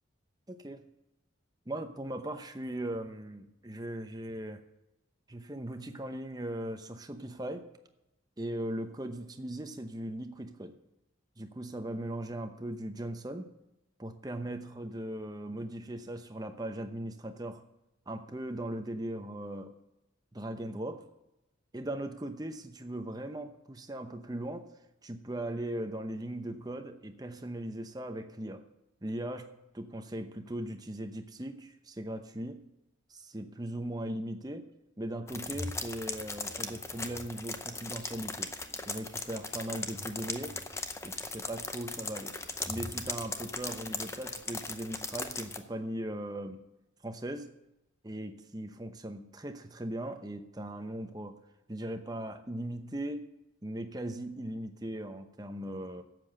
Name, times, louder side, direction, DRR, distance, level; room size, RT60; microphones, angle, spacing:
voice 1, 0.5-0.8 1.7-4.6 5.3-7.7 8.4-10.8 11.4-13.5 14.0-17.6 18.1-19.8 20.3-21.0 21.7-24.7 25.0-28.6 29.0-32.6 33.1-34.7 35.0-38.5 38.9-40.6 41.0-42.4 42.7-46.6 47.0-47.5 48.0-51.4 51.7-53.3 53.6-56.0, right 1 dB, 20° right, 7 dB, 0.8 m, -39 dB
sound 1, 35.3-45.6, left 3 dB, 15° left, 0.6 m, -38 dB
11.5 x 7.7 x 7.7 m, 0.90 s
head